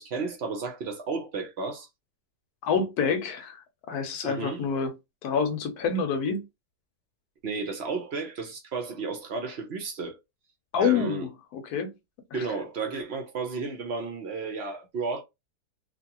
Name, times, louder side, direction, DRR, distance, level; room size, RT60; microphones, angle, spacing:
voice 1, 0.0-1.9 4.2-4.6 7.4-10.2 10.8-11.2 12.3-15.2, right 4 dB, 55° right, 0.7 m, -33 dB
voice 2, 2.6-5.0 5.2-6.4 10.7-11.9 12.3-12.4, left 6 dB, 70° left, 1.1 m, -27 dB
2.8 x 2.6 x 2.7 m
omnidirectional pair, 1.8 m